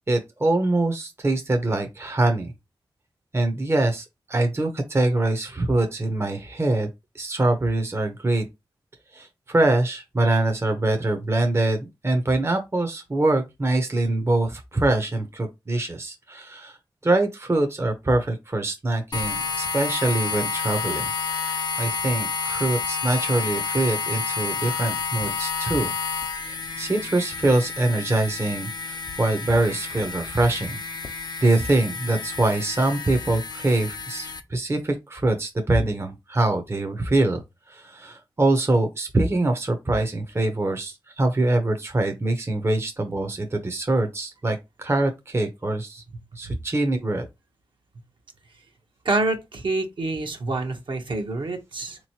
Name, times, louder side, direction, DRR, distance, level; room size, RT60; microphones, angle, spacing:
voice 1, 0.1-2.5 3.3-6.9 7.1-8.4 9.1-16.8 17.0-25.9 26.4-30.8 31.4-37.4 37.7-46.0 46.4-47.3, right 2 dB, 30° right, 0.7 m, -24 dB
sound 1, 19.1-34.4, left 5 dB, 50° left, 0.6 m, -30 dB
voice 2, 49.0-52.0, right 2 dB, 60° right, 1.0 m, -27 dB
3.7 x 3.0 x 2.8 m
cardioid pair, 55°, 9 cm